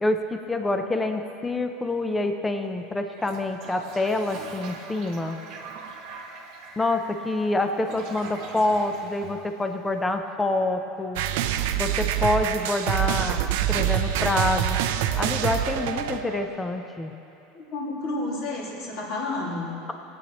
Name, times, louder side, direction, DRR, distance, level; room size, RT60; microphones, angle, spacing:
voice 1, 0.0-5.4 6.8-11.2 11.8-13.4 13.7-14.8 15.2-17.1, left 2 dB, 10° left, 6 dB, 0.5 m, -26 dB
Toilet flush, 3.1-10.1, right 4 dB, 45° right, 1.2 m, -42 dB
sound 1, 11.2-16.5, right 11 dB, 65° right, 0.5 m, -25 dB
voice 2, 17.5-19.8, left 2 dB, 45° left, -3 dB, 2.1 m, -31 dB
19.0 x 8.6 x 3.0 m, 2.8 s
supercardioid pair, 175°, 0 cm